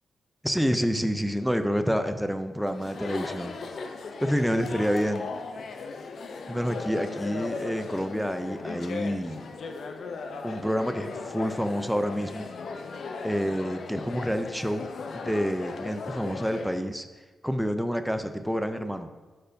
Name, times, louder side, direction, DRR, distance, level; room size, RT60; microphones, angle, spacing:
voice 1, 0.4-3.6 4.2-5.2 6.5-9.4 10.4-12.5 13.2-14.9 15.1-17.1 17.4-19.1, equal, ahead, 8 dB, 0.4 m, -28 dB
Chatter, 2.7-16.8, left 4 dB, 65° left, 0.5 m, -37 dB
12.5 x 4.4 x 2.6 m, 1.3 s
wide cardioid pair, 140°, 0 cm